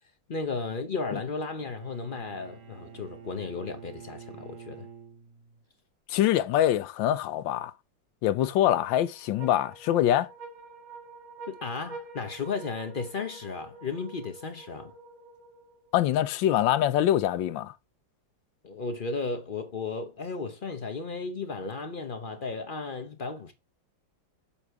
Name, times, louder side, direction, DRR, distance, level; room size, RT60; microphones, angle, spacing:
voice 1, 0.3-4.9 11.5-14.9 18.6-23.5, left 4 dB, 60° left, 0.5 m, -34 dB
Bowed string instrument, 1.5-5.6, right 7 dB, 50° right, 1.2 m, -48 dB
voice 2, 6.1-7.7 8.2-10.3 15.9-17.7, left 12 dB, 85° left, 1.3 m, -24 dB
sound 1, 8.4-15.9, right 3 dB, 85° right, 2.5 m, -47 dB
7.3 x 4.1 x 4.6 m
omnidirectional pair, 2.1 m